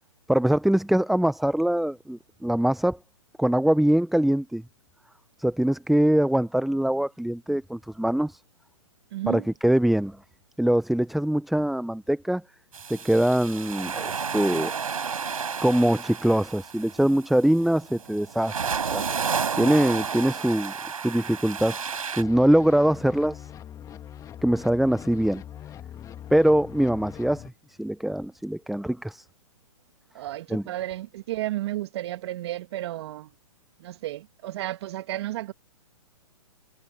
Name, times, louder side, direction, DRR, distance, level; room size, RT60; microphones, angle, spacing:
voice 1, 0.3-3.0 3.4-4.6 5.4-8.4 9.3-10.2 10.6-12.4 12.9-14.7 15.6-18.6 18.9-19.0 19.6-20.7 21.0-21.8 22.2-23.5 24.4-25.4 26.3-27.4 27.8-29.2 30.5-30.6, right 1 dB, ahead, 0.5 m, -23 dB
voice 2, 9.1-9.5 30.1-33.3 33.8-35.5, right 15 dB, 50° right, 1.6 m, -32 dB
sound 1, 12.7-22.2, right 6 dB, 80° right, 5.2 m, -32 dB
sound 2, 22.2-27.5, left 10 dB, 20° left, 1.9 m, -42 dB
hypercardioid pair, 130°, 18 cm